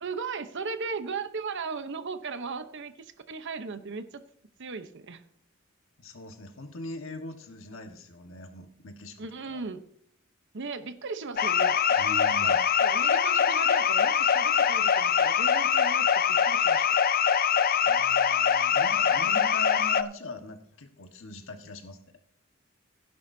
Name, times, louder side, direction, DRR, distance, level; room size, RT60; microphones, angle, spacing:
voice 1, 0.0-4.2 4.6-5.2 9.2-9.8 10.5-16.9 18.7-18.9, right 4 dB, 60° right, 10 dB, 0.9 m, -37 dB
voice 2, 6.0-9.6 12.0-12.7 17.8-22.0, left 2 dB, 70° left, 5 dB, 1.5 m, -42 dB
sound 1, 11.4-20.0, left 7 dB, 45° left, 0.5 m, -23 dB
15.5 x 10.5 x 2.7 m, 0.66 s
head